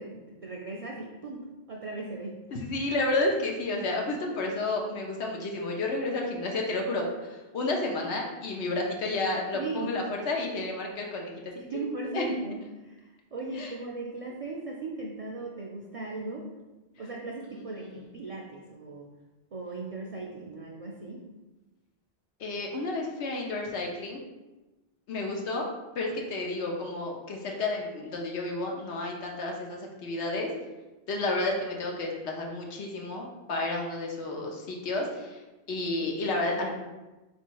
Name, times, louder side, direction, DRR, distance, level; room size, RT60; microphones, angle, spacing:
voice 1, 0.0-2.4 9.5-9.9 11.6-16.4 17.0-19.1 19.5-21.2, right 3 dB, 50° right, -1 dB, 0.4 m, -38 dB
voice 2, 2.5-12.2 13.5-13.7 17.5-18.0 22.4-24.2 25.1-25.7 25.9-30.5 31.1-35.4 35.7-36.8, left 2 dB, 90° left, 0 dB, 1.0 m, -31 dB
4.0 x 2.7 x 4.5 m, 1.1 s
omnidirectional pair, 1.1 m